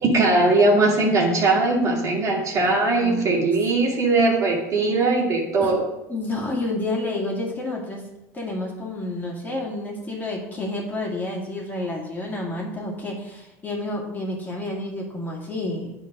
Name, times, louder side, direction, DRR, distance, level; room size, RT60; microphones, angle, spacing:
voice 1, 0.0-5.9, right 2 dB, 35° right, -2 dB, 2.3 m, -20 dB
voice 2, 2.8-3.4 5.6-5.7 6.1-8.0 8.3-15.9, left 2 dB, 20° left, -2 dB, 2.4 m, -30 dB
9.4 x 3.9 x 5.1 m, 0.95 s
supercardioid pair, 100°, 9 cm